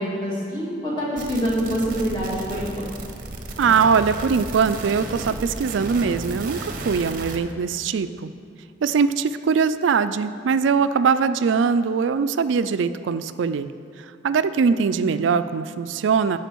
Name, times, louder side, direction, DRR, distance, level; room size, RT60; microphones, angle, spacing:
voice 1, 0.0-2.8 14.9-15.0, equal, 25° left, -7 dB, 2.2 m, -26 dB
sound 1, 1.2-7.4, right 2 dB, 45° right, 0.7 m, -34 dB
voice 2, 3.6-8.3 8.8-13.7 14.2-16.4, right 5 dB, 85° right, 12 dB, 0.4 m, -21 dB
13.5 x 5.0 x 4.6 m, 2.5 s
head